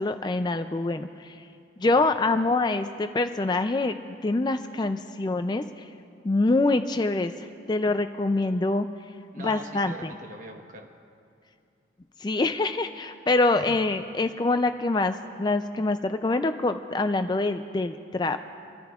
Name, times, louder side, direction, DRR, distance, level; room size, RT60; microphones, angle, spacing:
voice 1, 0.0-1.3 1.8-3.9 4.2-5.6 6.2-7.3 7.7-8.9 9.4-10.1 12.2-18.4, left 2 dB, 20° left, 9 dB, 0.3 m, -25 dB
voice 2, 1.8-2.2 9.3-10.9 13.5-13.7 18.3-18.4, right 1 dB, 40° right, 2 dB, 1.2 m, -42 dB
26.5 x 14.0 x 2.4 m, 2.6 s
head